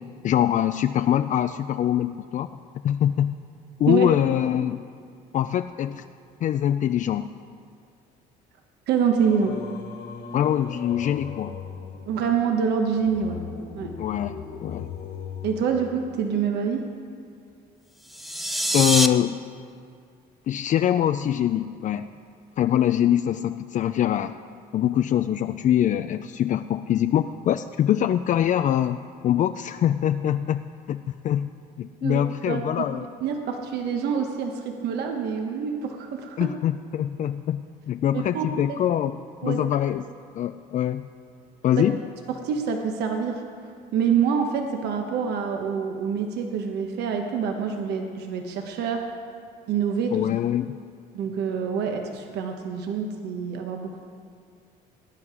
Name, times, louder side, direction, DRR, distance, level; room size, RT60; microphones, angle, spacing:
voice 1, 0.2-2.6 2.8-3.3 3.8-4.8 5.3-6.0 6.4-7.3 10.3-11.6 14.0-14.9 18.7-19.4 20.5-22.1 22.6-24.3 24.7-31.5 31.8-33.1 36.4-40.0 40.3-41.1 41.6-42.0 50.1-50.8, left 10 dB, 50° left, 10 dB, 0.4 m, -24 dB
voice 2, 3.9-4.2 8.9-9.6 12.1-13.4 13.7-13.9 15.4-16.8 32.0-32.6 33.2-36.5 38.1-38.5 39.4-39.6 42.3-43.4 43.9-49.1 49.7-50.1 51.1-54.0, right 6 dB, 75° right, 4 dB, 1.1 m, -26 dB
Singing, 9.2-16.6, left 6 dB, 80° left, 2.9 m, -39 dB
sound 1, 18.0-19.1, equal, ahead, 0.7 m, -24 dB
18.5 x 9.8 x 4.9 m, 2.3 s
cardioid pair, 110°, 17 cm